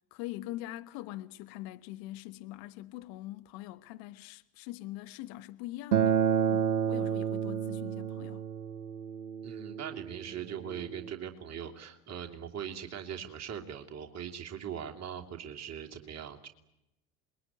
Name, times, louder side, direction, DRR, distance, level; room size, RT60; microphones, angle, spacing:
voice 1, 0.0-6.2 6.5-8.5, left 16 dB, 50° left, 1.3 m, -43 dB
Acoustic guitar, 5.9-11.1, right 8 dB, 70° right, 0.9 m, -30 dB
voice 2, 9.4-16.5, right 8 dB, 35° right, 3.0 m, -41 dB
27.0 x 21.5 x 9.7 m
figure-of-eight pair, 70°, 47 cm